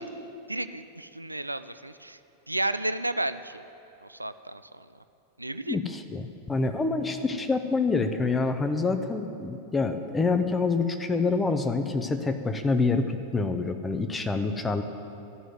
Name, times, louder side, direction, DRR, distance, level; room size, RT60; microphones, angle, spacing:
voice 1, 0.5-2.2 2.5-3.6 4.1-4.9 5.4-5.8, right 1 dB, 85° right, 12 dB, 0.3 m, -32 dB
voice 2, 5.7-14.8, left 3 dB, 15° left, 7 dB, 0.8 m, -27 dB
12.5 x 6.3 x 9.3 m, 2.7 s
figure-of-eight pair, 90°, 0 cm